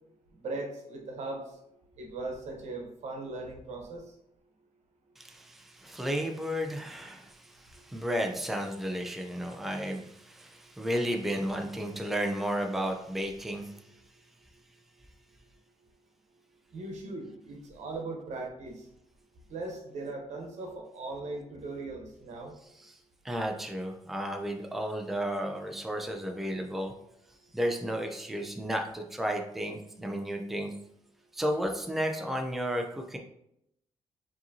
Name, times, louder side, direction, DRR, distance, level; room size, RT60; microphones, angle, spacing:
voice 1, 0.4-1.4 2.0-4.0 16.7-18.9 19.5-22.5, right 2 dB, 75° right, 1 dB, 1.0 m, -39 dB
voice 2, 5.2-13.7 22.8-23.0 23.2-26.9 27.5-30.7 31.3-33.2, equal, ahead, 3 dB, 0.4 m, -33 dB
4.8 x 2.9 x 2.7 m, 0.78 s
cardioid pair, 110°, 12 cm